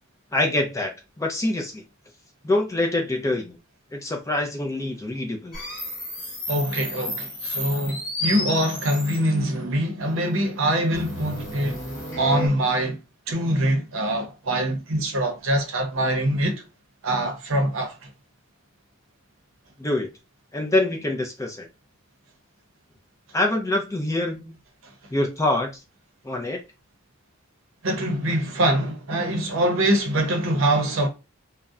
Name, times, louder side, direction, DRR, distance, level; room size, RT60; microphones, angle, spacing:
voice 1, 0.3-0.9 1.2-1.8 2.4-3.6 3.9-5.6 19.8-20.1 20.5-21.7 23.3-24.6 25.1-25.8 26.2-26.6, left 2 dB, 15° left, 0.4 m, -25 dB
sound 1, 5.5-9.4 10.9-12.5, equal, 45° left, 1.4 m, -32 dB
voice 2, 6.5-11.8 12.2-13.0 13.3-16.6 17.0-18.1 27.8-31.1, right 1 dB, 65° right, 0.7 m, -24 dB
2.6 x 2.0 x 2.3 m
head